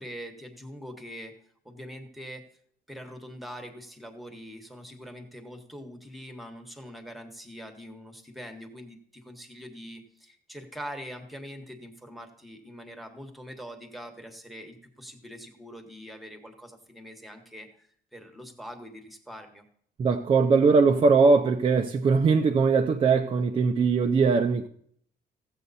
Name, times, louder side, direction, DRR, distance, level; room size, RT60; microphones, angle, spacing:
voice 1, 0.0-1.3 1.6-2.4 2.9-19.6, equal, ahead, 1.2 m, -43 dB
voice 2, 20.0-24.7, right 4 dB, 30° right, 0.5 m, -21 dB
15.0 x 7.7 x 4.1 m
cardioid pair, 170°, 19 cm